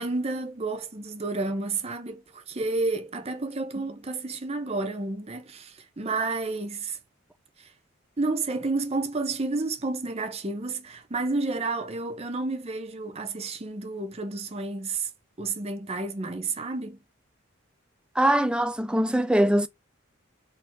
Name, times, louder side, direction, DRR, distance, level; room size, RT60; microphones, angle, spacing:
voice 1, 0.0-7.0 7.6-7.7 8.2-15.1 15.4-17.0, right 3 dB, 30° right, 0.7 m, -30 dB
voice 2, 18.2-19.7, right 1 dB, 5° right, 0.3 m, -22 dB
4.1 x 2.8 x 4.4 m
head